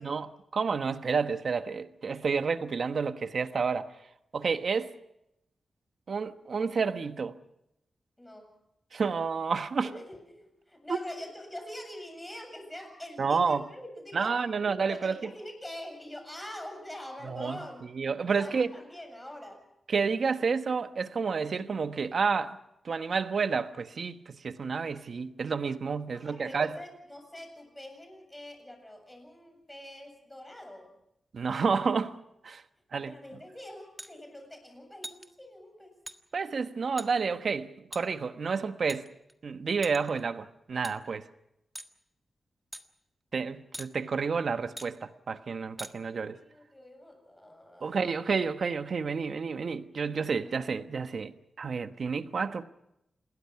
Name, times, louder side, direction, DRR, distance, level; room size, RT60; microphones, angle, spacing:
voice 1, 0.0-3.9 4.3-4.9 6.1-7.3 8.9-9.9 10.9-11.0 13.2-13.6 14.1-15.3 17.2-17.6 17.9-18.7 19.9-22.6 22.8-26.8 31.3-32.2 32.4-32.6 32.9-33.1 36.3-39.1 39.4-41.3 43.3-46.4 47.8-52.6, right 5 dB, 55° right, 1.2 m, -30 dB
voice 2, 8.2-8.5 9.8-17.8 18.3-19.6 26.1-30.9 33.1-36.0 46.1-48.1 50.4-50.5, left 1 dB, 10° left, 7.6 m, -45 dB
sound 1, 34.0-34.1 35.0-35.3 36.1-36.2 37.0-37.1 37.9-38.0 38.9-39.3 39.8-40.2 40.8-41.0 41.7-41.9 42.7-42.8 43.7-43.9 44.8-44.9 45.8-45.9, right 1 dB, 5° right, 1.6 m, -41 dB
28.0 x 21.5 x 5.9 m
wide cardioid pair, 120°, 0 cm